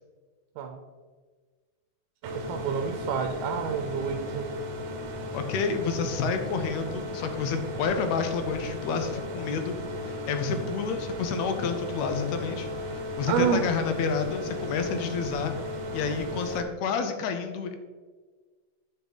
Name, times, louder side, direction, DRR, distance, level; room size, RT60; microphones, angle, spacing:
sound 1, 2.2-16.6, left 1 dB, 65° right, 1.9 m, -35 dB
voice 1, 2.4-4.5 13.3-13.7, right 7 dB, 80° right, 4 dB, 2.2 m, -28 dB
voice 2, 5.3-9.8 10.1-15.5 15.9-17.7, left 5 dB, 75° left, 7 dB, 1.7 m, -29 dB
10.0 x 5.8 x 4.0 m, 1.4 s
omnidirectional pair, 3.7 m